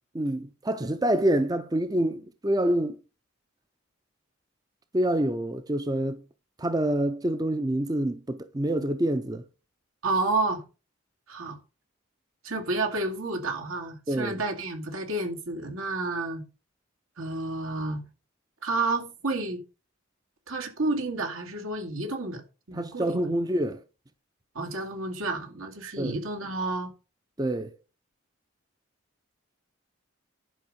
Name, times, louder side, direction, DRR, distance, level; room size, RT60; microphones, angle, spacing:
voice 1, 0.2-3.0 4.9-6.2 6.6-9.4 14.1-14.4 22.7-23.8 26.0-26.2 27.4-27.7, right 1 dB, 20° right, 0.5 m, -26 dB
voice 2, 10.0-10.6 11.3-11.6 12.4-16.4 17.2-18.0 18.6-19.6 20.5-22.4 22.7-23.3 24.5-26.9, right 2 dB, 80° right, 2.3 m, -30 dB
11.0 x 5.4 x 5.2 m
head